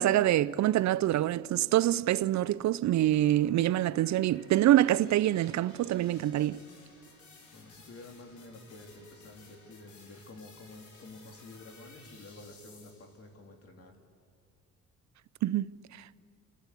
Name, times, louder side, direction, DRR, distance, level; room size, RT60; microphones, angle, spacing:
voice 1, 0.0-6.6 15.4-15.7, right 13 dB, 65° right, 0.5 m, -25 dB
sound 1, 2.2-13.3, left 3 dB, 75° left, 4.2 m, -57 dB
voice 2, 7.5-13.9, left 2 dB, 50° left, 3.2 m, -50 dB
29.0 x 12.0 x 8.3 m
cardioid pair, 90°, 30 cm